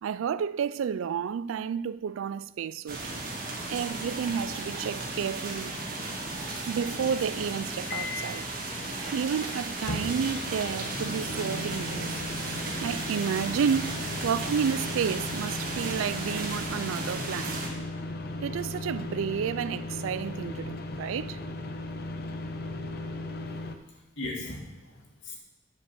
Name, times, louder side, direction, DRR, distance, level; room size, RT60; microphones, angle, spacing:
voice 1, 0.0-3.1 3.7-5.8 6.6-8.5 9.1-12.2 12.8-17.6 18.4-21.4, right 7 dB, 90° right, 0.3 m, -31 dB
sound 1, 2.9-17.7, right 2 dB, 45° right, 1.5 m, -35 dB
sound 2, 7.9-8.3 9.9-23.8, left 2 dB, 50° left, 0.7 m, -37 dB
voice 2, 23.5-25.4, left 2 dB, 70° left, 2.2 m, -40 dB
9.5 x 5.2 x 7.0 m
head